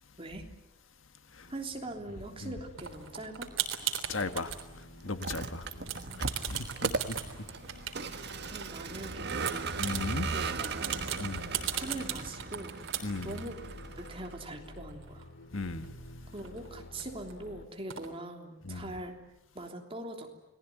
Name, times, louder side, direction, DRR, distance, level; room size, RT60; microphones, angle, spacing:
sound 1, 1.4-17.7, left 1 dB, 60° left, 2.7 m, -51 dB
voice 1, 1.5-3.5 5.7-6.4 8.5-9.7 10.3-11.0 11.7-12.8 13.2-13.6 14.0-15.3 16.3-19.1 19.5-20.3, right 1 dB, 25° right, 3.4 m, -42 dB
sound 2, 2.8-4.6 5.1-5.4 5.7-8.6 9.1-15.2 15.6-15.7 15.8-17.3 17.9-18.1, right 10 dB, 75° right, 3.6 m, -38 dB
voice 2, 4.1-5.7 6.2-7.2 9.8-10.3 11.2-11.6 13.0-13.4 15.5-16.0 18.6-18.9, left 3 dB, 75° left, 1.6 m, -37 dB
Vehicle, 5.1-14.5, right 4 dB, 55° right, 1.5 m, -37 dB
29.0 x 20.0 x 9.3 m
head